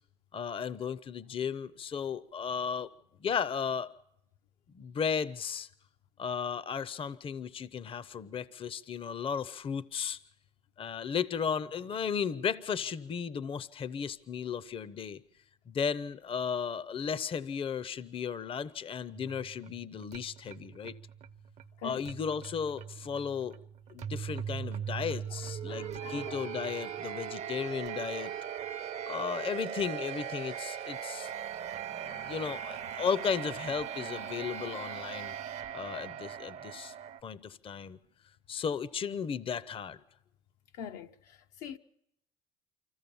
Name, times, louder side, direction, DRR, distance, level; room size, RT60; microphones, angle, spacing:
voice 1, 0.3-2.9 3.2-3.9 4.7-5.7 6.2-10.2 10.8-15.2 15.7-21.0 21.8-23.6 23.9-28.3 29.1-31.3 31.9-35.3 35.7-36.9 37.2-38.0 38.5-40.0, left 6 dB, 35° left, 0.7 m, -35 dB
sound 1, 19.1-37.2, right 9 dB, 50° right, 0.7 m, -40 dB
voice 2, 25.7-26.5 40.7-41.8, left 8 dB, 70° left, 0.8 m, -44 dB
25.0 x 15.0 x 7.0 m
supercardioid pair, 75°, 15 cm